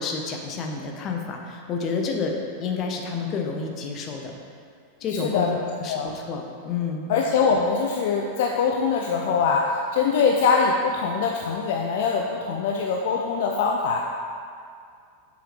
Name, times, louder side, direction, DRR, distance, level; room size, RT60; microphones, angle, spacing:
voice 1, 0.0-2.3 2.6-4.4 5.0-5.5 5.8-7.1, left 5 dB, 30° left, 1 dB, 0.8 m, -29 dB
voice 2, 5.1-5.6 5.9-6.1 7.1-14.0, left 5 dB, 55° left, 1 dB, 0.4 m, -23 dB
7.6 x 4.9 x 3.2 m, 2.2 s
figure-of-eight pair, 90°, 0 cm